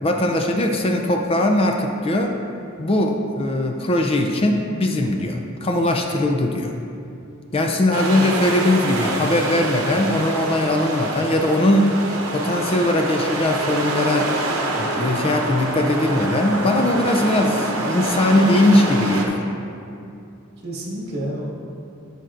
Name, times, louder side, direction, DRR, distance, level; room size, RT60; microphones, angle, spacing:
voice 1, 0.0-2.4 2.8-6.7 7.5-12.0 12.3-14.3 14.8-19.5, left 1 dB, 25° left, 3 dB, 0.4 m, -20 dB
sound 1, 7.9-19.3, right 2 dB, 75° right, 0.9 m, -26 dB
voice 2, 8.1-8.5 20.6-21.4, right 1 dB, 50° right, -4 dB, 1.6 m, -30 dB
13.0 x 5.2 x 2.5 m, 2.6 s
head